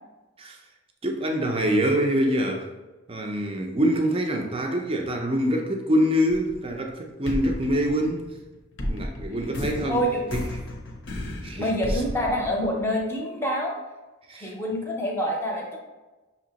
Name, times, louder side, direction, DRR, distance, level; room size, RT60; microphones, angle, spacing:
voice 1, 1.0-2.7 3.1-8.3 8.9-10.0 10.3-10.4 11.4-12.0 14.3-14.5, equal, 25° right, 2 dB, 0.5 m, -25 dB
sound 1, 6.3-6.9 7.3-13.1, left 1 dB, 55° left, 0.7 m, -33 dB
voice 2, 9.8-10.4 11.6-13.7 14.4-15.8, equal, 10° left, -2 dB, 0.7 m, -26 dB
6.0 x 2.9 x 2.9 m, 1.2 s
head